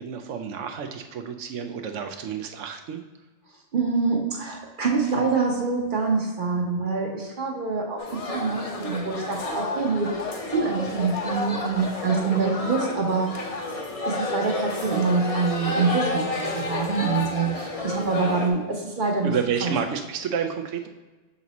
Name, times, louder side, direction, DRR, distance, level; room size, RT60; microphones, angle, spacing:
voice 1, 0.0-3.0 19.2-20.9, right 7 dB, 85° right, 6 dB, 1.0 m, -30 dB
voice 2, 3.7-13.6 14.0-19.3 19.6-19.7, right 4 dB, 50° right, 0 dB, 0.9 m, -25 dB
sound 1, 8.0-18.5, left 2 dB, 40° left, 0.6 m, -31 dB
5.9 x 4.1 x 4.0 m, 1.2 s
omnidirectional pair, 1.2 m